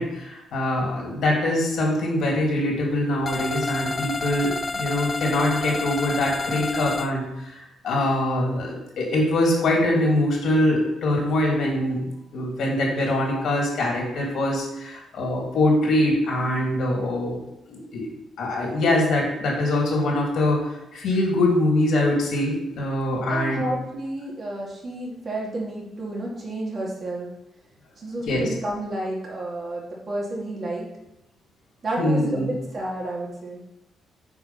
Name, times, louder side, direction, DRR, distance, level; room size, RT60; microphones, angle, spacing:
voice 1, 0.0-12.0 12.3-17.4 17.7-18.1 18.4-20.6 20.9-23.6 28.3-28.5 32.0-32.5, left 1 dB, 70° left, -2 dB, 3.1 m, -23 dB
sound 1, 3.2-7.1, left 3 dB, 20° left, 0.4 m, -29 dB
voice 2, 23.3-27.3 28.0-30.9 31.8-33.6, right 1 dB, 40° right, -3 dB, 2.6 m, -31 dB
6.8 x 4.6 x 5.8 m, 0.92 s
cardioid pair, 90°, 0 cm